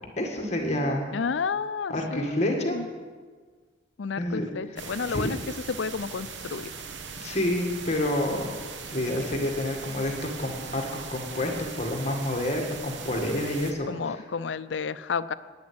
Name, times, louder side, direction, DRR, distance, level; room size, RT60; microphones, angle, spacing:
voice 1, 0.2-1.1 1.9-2.8 4.1-4.4 4.7-4.8 5.1-5.3 7.2-8.5 8.9-14.2, left 1 dB, 35° left, 2 dB, 1.9 m, -28 dB
voice 2, 1.1-2.9 4.0-5.4 5.7-6.7 13.9-15.3, left 5 dB, 85° left, 15 dB, 0.5 m, -31 dB
sound 1, 4.8-13.7, right 5 dB, 80° right, 1.1 m, -40 dB
10.5 x 9.7 x 8.7 m, 1.5 s
head